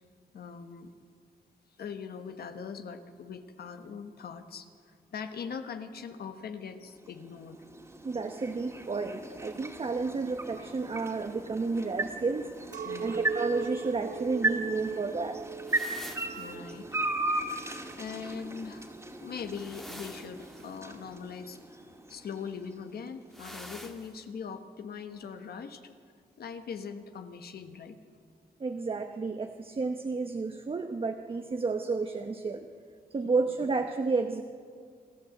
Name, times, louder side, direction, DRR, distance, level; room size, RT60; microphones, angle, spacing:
voice 1, 0.3-0.9 1.8-7.6 12.8-13.2 16.3-16.9 17.4-17.5 18.0-18.9 19.2-21.8 22.1-25.9 26.4-28.0, left 6 dB, 80° left, 8 dB, 1.3 m, -41 dB
sound 1, 6.9-23.1, right 2 dB, 20° right, 2.2 m, -37 dB
voice 2, 8.0-12.5 13.0-15.4 28.6-32.7 33.1-34.4, right 4 dB, 35° right, 5 dB, 0.9 m, -31 dB
Chink clink, 12.7-18.2, right 5 dB, 55° right, 0.5 m, -39 dB
sound 2, 15.7-16.6 19.5-20.8 23.3-24.2, equal, ahead, 1.5 m, -46 dB
28.0 x 12.0 x 7.9 m, 2.2 s
wide cardioid pair, 115°, 16 cm